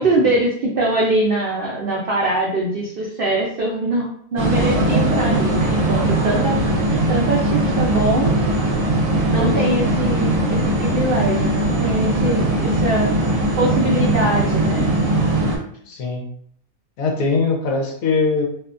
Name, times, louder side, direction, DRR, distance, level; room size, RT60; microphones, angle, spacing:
voice 1, 0.0-6.6 7.1-8.3 9.3-13.1 13.6-14.8, right 1 dB, 85° right, -3 dB, 0.5 m, -22 dB
sound 1, 4.4-15.6, right 1 dB, 65° right, 1.0 m, -19 dB
voice 2, 9.4-9.7 15.8-16.2 17.0-18.4, left 4 dB, 75° left, 1 dB, 1.0 m, -21 dB
2.7 x 2.2 x 2.4 m, 0.63 s
omnidirectional pair, 1.6 m